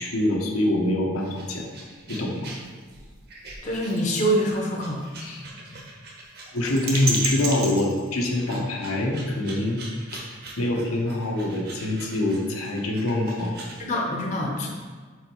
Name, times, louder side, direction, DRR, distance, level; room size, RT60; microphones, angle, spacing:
voice 1, 0.0-1.7 2.1-2.4 5.2-5.4 6.5-9.8 10.6-13.5, left 1 dB, 85° left, -1 dB, 1.0 m, -25 dB
sound 1, 1.1-13.8, right 3 dB, 50° right, 0.9 m, -36 dB
voice 2, 3.6-5.0 13.8-14.7, equal, 35° left, -1 dB, 0.6 m, -25 dB
4.8 x 4.4 x 4.4 m, 1.5 s
head